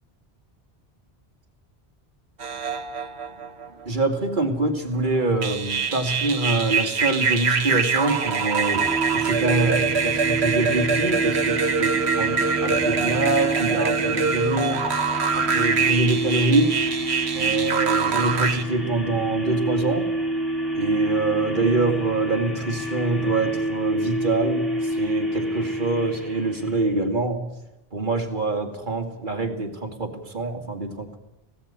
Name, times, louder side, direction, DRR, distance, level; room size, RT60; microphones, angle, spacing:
sound 1, 2.4-4.1 4.8-18.6, right 5 dB, 90° right, 1.5 m, -24 dB
voice 1, 3.9-8.9 9.1-14.8 15.3-16.8 17.3-20.1 20.7-27.5 27.9-31.2, right 2 dB, 50° right, 4 dB, 2.7 m, -25 dB
sound 2, 8.7-27.0, right 2 dB, ahead, 3.5 m, -28 dB
19.5 x 16.5 x 9.0 m, 0.94 s
omnidirectional pair, 1.1 m